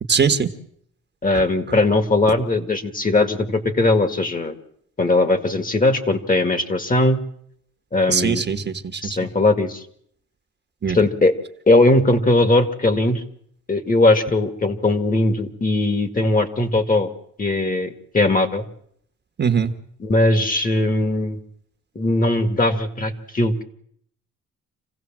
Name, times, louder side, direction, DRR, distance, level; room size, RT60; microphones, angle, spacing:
voice 1, 0.1-0.5 1.3-1.4 8.1-9.2 10.8-11.0 19.4-19.7, right 6 dB, 35° right, 7 dB, 1.6 m, -21 dB
voice 2, 1.2-4.6 5.0-7.2 7.9-8.5 9.0-9.8 10.9-11.4 11.7-13.2 13.7-17.1 17.4-18.7 20.0-21.4 22.0-23.6, left 2 dB, 30° left, 10 dB, 2.2 m, -19 dB
26.5 x 16.0 x 7.6 m, 0.69 s
cardioid pair, 90°, 30 cm